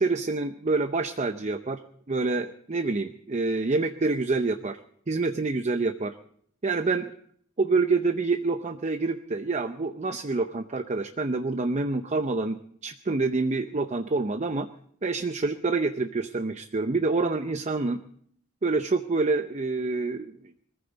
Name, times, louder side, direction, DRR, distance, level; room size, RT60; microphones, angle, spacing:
voice 1, 0.0-1.8 2.1-4.8 5.1-6.1 6.6-7.1 7.6-14.7 15.0-18.0 18.6-20.4, right 3 dB, 35° right, 8 dB, 0.6 m, -27 dB
21.5 x 14.5 x 4.0 m, 0.62 s
head